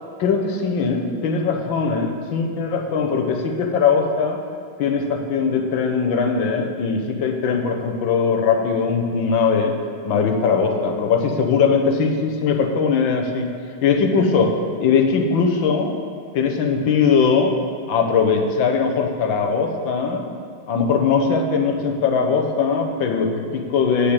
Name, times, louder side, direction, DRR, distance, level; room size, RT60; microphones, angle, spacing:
voice 1, 0.2-4.4 4.8-9.7 10.1-13.5 13.8-15.9 16.3-17.5 17.9-20.3 20.7-24.1, left 5 dB, 70° left, 3 dB, 1.7 m, -20 dB
8.2 x 6.5 x 8.1 m, 2.4 s
omnidirectional pair, 2.2 m